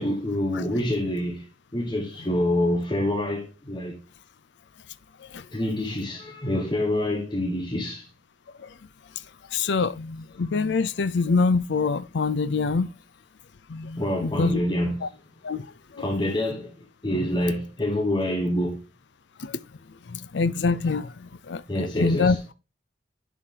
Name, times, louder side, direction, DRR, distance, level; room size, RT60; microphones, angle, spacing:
voice 1, 0.0-4.0 5.5-8.1 14.0-15.1 16.0-18.8 21.7-22.4, left 1 dB, 25° left, 1.1 m, -26 dB
voice 2, 9.5-12.9 13.7-14.6 15.0-15.1 15.4-15.7 15.9-16.1 19.4-19.6 20.1-22.4, left 4 dB, 75° left, 0.5 m, -25 dB
11.0 x 5.0 x 2.8 m
head